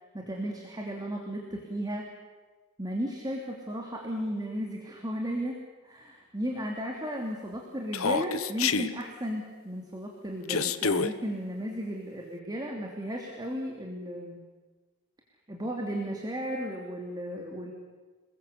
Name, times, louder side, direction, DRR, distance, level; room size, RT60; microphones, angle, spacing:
voice 1, 0.1-2.1 2.8-14.4 15.5-17.7, equal, 20° right, 0 dB, 3.0 m, -35 dB
Human voice, 7.9-8.9 10.5-11.1, left 5 dB, 65° left, 1.2 m, -27 dB
28.5 x 21.0 x 8.3 m, 1.3 s
head